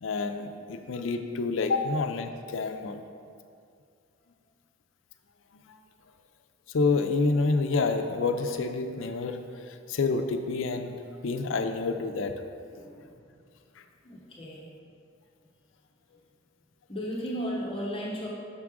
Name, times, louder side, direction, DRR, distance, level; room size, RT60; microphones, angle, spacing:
voice 1, 0.0-3.0 5.5-5.8 6.7-10.9 11.2-12.3, left 3 dB, 75° left, 7 dB, 0.5 m, -28 dB
voice 2, 12.7-13.1 14.0-14.7 16.9-18.3, equal, 30° left, -4 dB, 0.8 m, -35 dB
6.6 x 6.0 x 3.6 m, 2.3 s
head